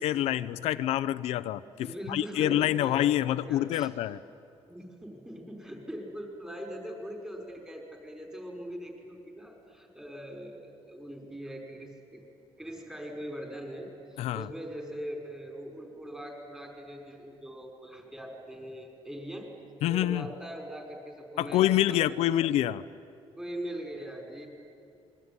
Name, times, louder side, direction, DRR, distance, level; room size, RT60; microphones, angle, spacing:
voice 1, 0.0-4.2 14.2-14.5 19.8-20.3 21.4-22.8, left 13 dB, 85° left, 12 dB, 0.7 m, -27 dB
voice 2, 1.8-3.1 3.4-3.9 4.7-12.2 12.6-19.5 19.9-21.6 21.9-22.1 23.3-24.5, equal, 10° right, 1 dB, 5.6 m, -41 dB
27.0 x 22.0 x 9.8 m, 2.5 s
cardioid pair, 145°, 10 cm